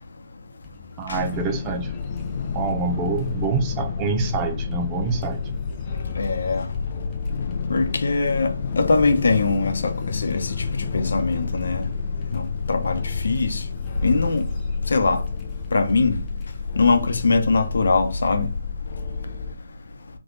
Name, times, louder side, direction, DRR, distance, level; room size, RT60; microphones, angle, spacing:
sound 1, 0.6-16.9, left 5 dB, 15° left, 1.0 m, -47 dB
voice 1, 1.0-1.9 2.2-5.4, right 5 dB, 25° right, 0.7 m, -27 dB
sound 2, 1.1-19.5, left 5 dB, 45° left, 0.6 m, -30 dB
voice 2, 6.2-6.6 7.7-8.5 8.8-9.8 10.1-10.5 10.9-11.8 12.3-13.6 14.0-14.4 14.9-15.2 15.7-16.2 16.8-18.5, left 3 dB, 70° left, 0.9 m, -21 dB
3.5 x 3.5 x 4.0 m
figure-of-eight pair, 145°, 0 cm